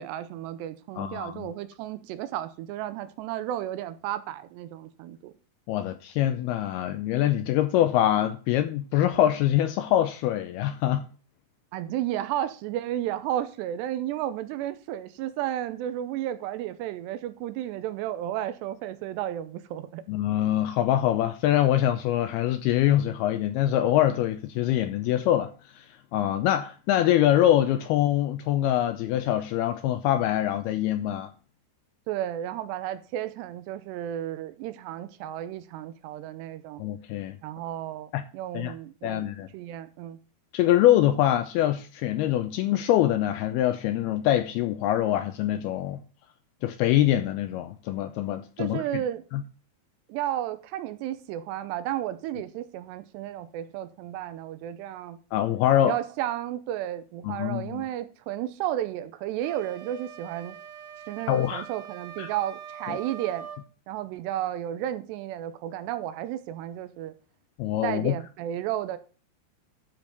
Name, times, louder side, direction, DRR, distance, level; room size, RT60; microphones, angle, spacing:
voice 1, 0.0-5.3 11.7-20.0 32.1-36.8 37.4-40.2 48.6-49.2 50.1-55.2 55.8-60.6 61.1-63.5 63.9-67.1 67.8-69.0, right 12 dB, 85° right, 2.8 m, -33 dB
voice 2, 1.0-1.5 5.7-11.1 20.1-25.5 25.8-25.9 26.1-31.3 36.8-37.4 38.1-38.2 38.5-38.7 39.0-39.5 40.5-46.0 46.6-49.0 49.3-49.4 55.3-56.0 57.2-57.8 61.3-61.7 62.2-62.3 62.9-63.0 67.6-68.1, left 12 dB, 80° left, 2.3 m, -24 dB
sound 1, 59.4-63.6, right 8 dB, 60° right, 2.1 m, -43 dB
12.5 x 4.6 x 5.2 m
omnidirectional pair, 5.0 m